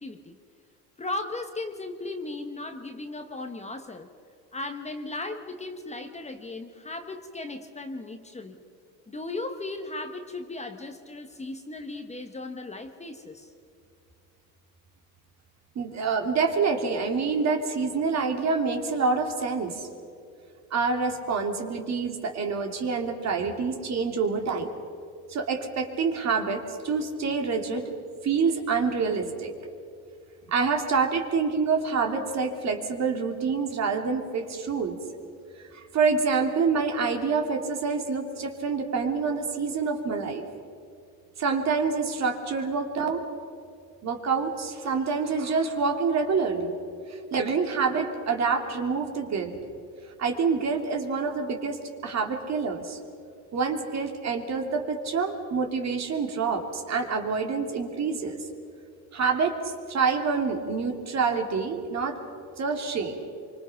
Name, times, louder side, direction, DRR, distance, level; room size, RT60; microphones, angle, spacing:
voice 1, 0.0-0.4 1.0-4.1 4.5-8.6 9.1-13.5, left 2 dB, 15° left, 6 dB, 1.4 m, -36 dB
voice 2, 15.7-19.9 20.7-24.7 25.3-27.9 28.2-29.5 30.5-35.0 35.7-40.4 41.4-43.2 44.0-46.7 47.1-49.5 50.2-53.0 53.5-58.5 59.1-62.2 62.6-63.3, right 5 dB, 45° right, 4 dB, 3.1 m, -27 dB
26.0 x 24.5 x 5.9 m, 2.5 s
cardioid pair, 110°, 39 cm